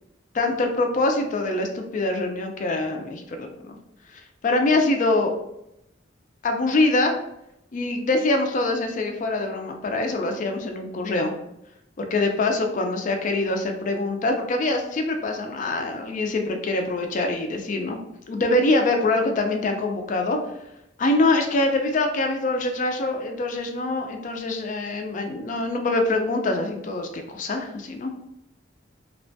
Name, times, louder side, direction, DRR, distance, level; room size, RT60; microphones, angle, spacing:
voice 1, 0.3-3.8 4.4-5.3 6.4-7.2 7.7-11.3 12.0-18.0 18.3-20.4 21.0-28.1, left 2 dB, 45° left, 4 dB, 0.4 m, -24 dB
2.9 x 2.1 x 2.6 m, 0.83 s
head